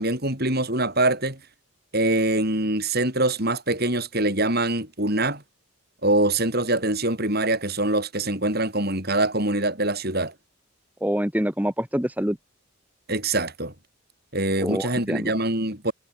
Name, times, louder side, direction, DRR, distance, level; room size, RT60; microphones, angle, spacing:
voice 1, 0.0-1.4 1.9-5.4 6.0-10.3 13.1-13.7 14.3-15.9, right 2 dB, 45° right, 7.9 m, -24 dB
voice 2, 11.0-12.4 14.6-15.3, equal, 5° right, 1.5 m, -26 dB
head